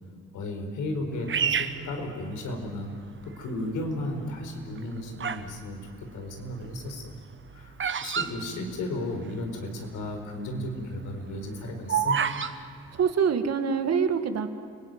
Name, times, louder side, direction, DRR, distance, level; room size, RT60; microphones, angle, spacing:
voice 1, 0.3-7.1 7.5-7.8 8.0-12.2, left 1 dB, 85° left, 4 dB, 4.8 m, -34 dB
Bird vocalization bird call bird song, 1.3-2.8 3.4-3.9 4.6-5.5 5.8-9.3 9.6-9.7 9.8-10.2 10.6-12.5, right 7 dB, 40° right, 1.2 m, -29 dB
voice 2, 13.0-14.5, right 6 dB, 55° right, 8 dB, 2.0 m, -25 dB
29.5 x 18.5 x 9.4 m, 2.5 s
cardioid pair, 90°, 30 cm